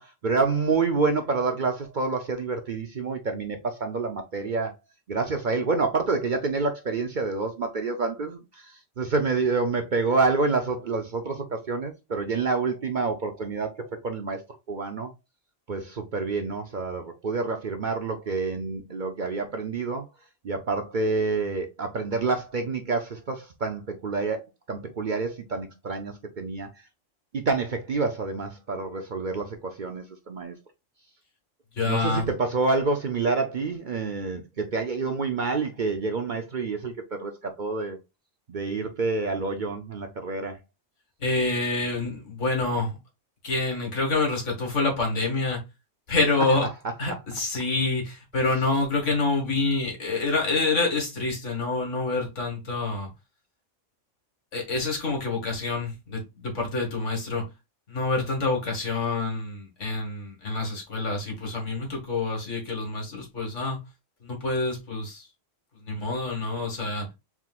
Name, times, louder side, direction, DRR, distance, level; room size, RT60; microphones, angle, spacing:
voice 1, 0.0-4.7 5.1-15.1 15.7-20.1 20.4-24.4 24.7-26.7 27.3-30.5 31.9-38.0 38.5-40.6, right 4 dB, 50° right, 0.7 m, -28 dB
voice 2, 31.8-32.2 41.2-43.0 43.4-45.6 46.1-46.7 47.0-53.1 54.5-57.5 57.9-63.8 64.2-65.2 65.8-67.1, left 3 dB, 70° left, 2.1 m, -27 dB
4.4 x 3.8 x 2.4 m
omnidirectional pair, 1.3 m